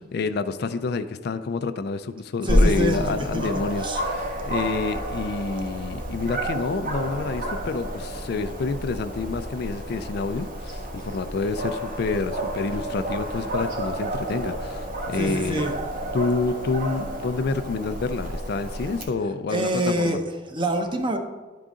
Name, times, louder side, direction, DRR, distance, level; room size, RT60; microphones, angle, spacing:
voice 1, 0.1-15.7 16.1-20.2, left 4 dB, 60° left, 11 dB, 0.4 m, -28 dB
voice 2, 2.4-3.5 3.8-4.0 15.1-15.8 19.5-21.2, right 1 dB, 25° right, 5 dB, 0.8 m, -26 dB
Dog, 2.5-19.0, equal, 50° right, 1.3 m, -29 dB
11.5 x 3.8 x 3.7 m, 1.3 s
head